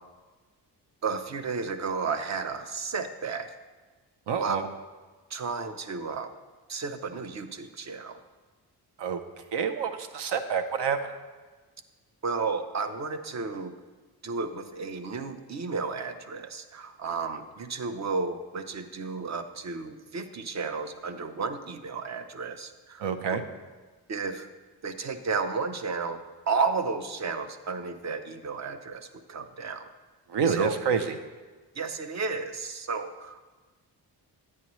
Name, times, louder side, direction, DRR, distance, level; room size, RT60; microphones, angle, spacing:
voice 1, 1.0-3.5 4.4-4.6 5.3-6.3 6.7-8.2 12.2-13.7 14.2-23.1 24.1-24.5 24.8-26.2 26.5-29.9 30.5-30.7 31.8-33.4, right 4 dB, 40° right, 9 dB, 0.6 m, -32 dB
voice 2, 4.3-4.7 9.0-9.2 9.5-11.1 23.0-23.4 30.3-31.2, right 6 dB, 80° right, 8 dB, 0.7 m, -28 dB
9.9 x 9.5 x 3.1 m, 1.3 s
wide cardioid pair, 120°, 41 cm